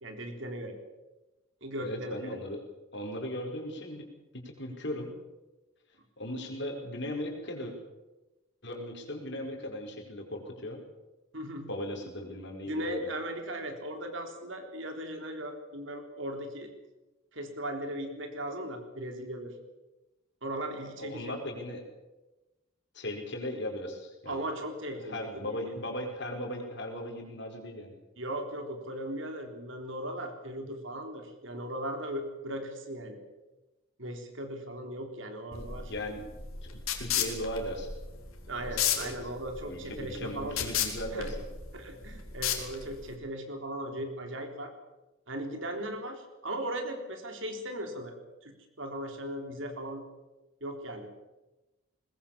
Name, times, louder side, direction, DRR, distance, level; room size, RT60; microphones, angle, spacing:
voice 1, 0.0-0.8 1.6-2.4 11.3-11.7 12.6-16.7 17.3-19.5 20.4-21.3 24.3-25.7 28.2-33.2 34.0-35.9 38.5-40.6 41.1-41.3 41.7-44.7 45.3-48.2 48.4-50.0 50.6-51.1, right 1 dB, 65° right, 4 dB, 3.7 m, -38 dB
voice 2, 1.8-2.6 2.9-4.1 4.3-5.1 6.2-7.7 8.6-10.8 11.7-13.1 21.0-21.8 22.9-24.5 25.1-27.9 35.6-36.4 36.6-37.9 38.6-38.7 39.0-39.1 39.7-41.3, left 1 dB, 55° left, 2 dB, 4.9 m, -37 dB
sound 1, 35.5-43.2, left 9 dB, 85° left, 3.8 m, -34 dB
21.5 x 20.5 x 7.3 m, 1.1 s
head